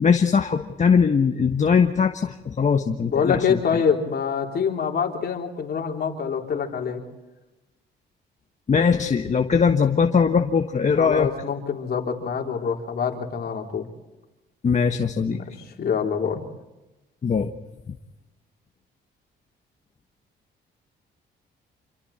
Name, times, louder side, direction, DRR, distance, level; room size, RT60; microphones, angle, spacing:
voice 1, 0.0-3.6 8.7-11.3 14.6-15.4 17.2-17.5, left 6 dB, 35° left, 5 dB, 1.3 m, -20 dB
voice 2, 3.1-7.0 11.0-13.9 15.3-16.4, left 6 dB, 50° left, 1 dB, 3.9 m, -25 dB
27.5 x 23.5 x 4.4 m, 1.0 s
cardioid pair, 90°, 20 cm